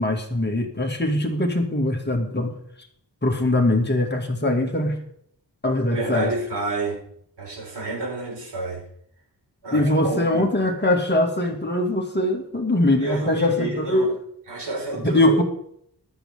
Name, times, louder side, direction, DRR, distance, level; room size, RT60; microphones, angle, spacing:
voice 1, 0.0-2.6 3.2-5.0 5.6-6.3 9.7-14.1 15.0-15.4, left 1 dB, 25° left, 2 dB, 2.4 m, -22 dB
voice 2, 5.9-7.0 7.4-8.8 9.6-10.5 13.0-14.1 14.5-15.4, right 3 dB, 90° right, -1 dB, 5.3 m, -29 dB
15.0 x 12.5 x 3.8 m, 0.67 s
wide cardioid pair, 130°, 40 cm